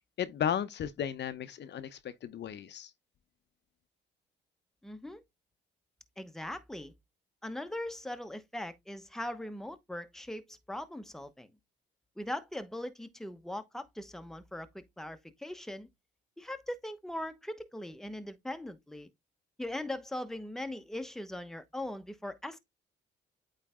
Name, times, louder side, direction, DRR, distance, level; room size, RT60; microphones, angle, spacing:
voice 1, 0.2-2.9, left 9 dB, 60° left, 0.8 m, -34 dB
voice 2, 4.8-5.2 6.2-6.9 7.4-11.5 12.2-15.9 16.4-19.1 19.6-22.6, left 1 dB, ahead, 0.9 m, -40 dB
8.7 x 3.2 x 3.6 m
cardioid pair, 90°, 20 cm